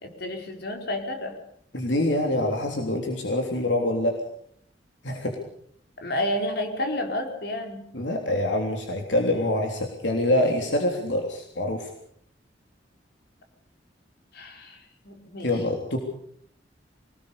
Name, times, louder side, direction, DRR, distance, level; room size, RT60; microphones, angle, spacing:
voice 1, 0.0-1.3 6.0-7.8 14.3-15.5, left 1 dB, 60° left, 4 dB, 4.6 m, -30 dB
voice 2, 1.7-4.2 5.0-5.4 7.9-11.9 15.4-16.0, left 1 dB, 80° left, 2 dB, 3.4 m, -25 dB
25.0 x 19.5 x 6.9 m, 0.67 s
head